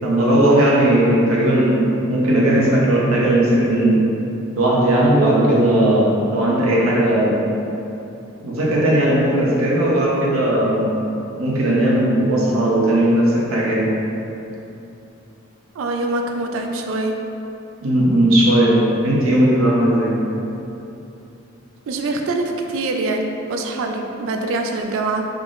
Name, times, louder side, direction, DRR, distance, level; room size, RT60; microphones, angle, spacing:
voice 1, 0.0-4.1 4.6-7.4 8.4-10.8 11.4-13.8 17.8-20.2, right 1 dB, 85° right, -5 dB, 0.7 m, -17 dB
voice 2, 15.7-17.2 21.9-25.3, right 2 dB, 70° right, 3 dB, 0.3 m, -24 dB
3.5 x 2.0 x 3.6 m, 2.9 s
head